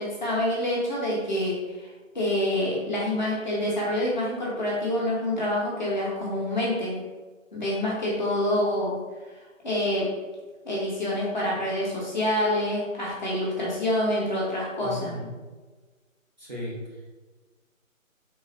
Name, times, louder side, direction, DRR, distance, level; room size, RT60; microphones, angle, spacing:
voice 1, 0.0-7.0 7.5-9.0 9.6-10.1 10.6-15.1, left 1 dB, 35° left, -6 dB, 1.1 m, -27 dB
voice 2, 14.8-15.4 16.4-16.9, left 1 dB, 35° right, -6 dB, 0.8 m, -36 dB
3.9 x 2.4 x 3.9 m, 1.3 s
figure-of-eight pair, 170°, 41 cm